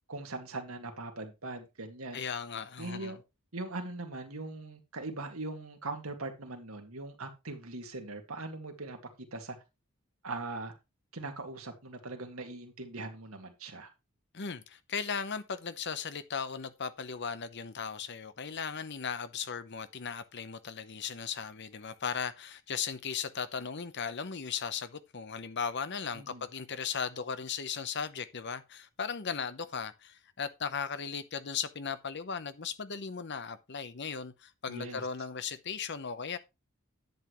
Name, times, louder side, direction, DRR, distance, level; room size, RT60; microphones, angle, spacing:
voice 1, 0.1-2.2 2.8-3.2 3.5-9.0 9.3-9.6 10.2-10.7 11.1-13.9 26.1-26.4 34.7-35.0, right 2 dB, 85° right, 2.1 m, -40 dB
voice 2, 2.1-3.2 14.3-36.4, left 6 dB, 55° left, 0.9 m, -37 dB
10.5 x 8.2 x 3.1 m
head